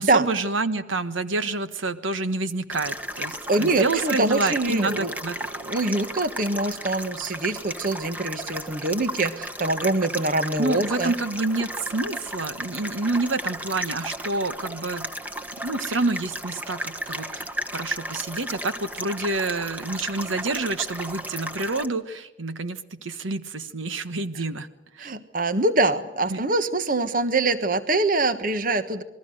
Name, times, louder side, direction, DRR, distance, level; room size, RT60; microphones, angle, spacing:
voice 1, 0.0-5.4 10.6-15.1 15.6-24.7 24.9-25.1 26.3-26.4, right 3 dB, 90° right, 11 dB, 1.4 m, -28 dB
sound 1, 2.7-21.9, equal, 10° right, 1.3 m, -34 dB
voice 2, 3.5-5.1 5.6-11.1 25.0-29.0, right 2 dB, 45° right, 11 dB, 1.3 m, -24 dB
28.0 x 21.0 x 6.5 m, 0.96 s
head